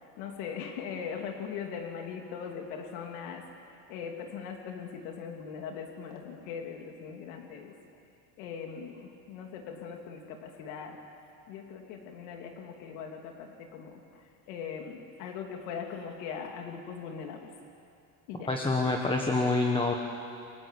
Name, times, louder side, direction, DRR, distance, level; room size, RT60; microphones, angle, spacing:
voice 1, 0.2-3.4 3.9-7.7 8.4-11.0 11.5-14.2 14.5-17.5 18.3-18.5, left 6 dB, 85° left, 2 dB, 3.1 m, -40 dB
voice 2, 18.5-19.9, left 3 dB, 10° left, 1 dB, 1.5 m, -26 dB
29.0 x 23.5 x 8.5 m, 2.5 s
cardioid pair, 165°, 43 cm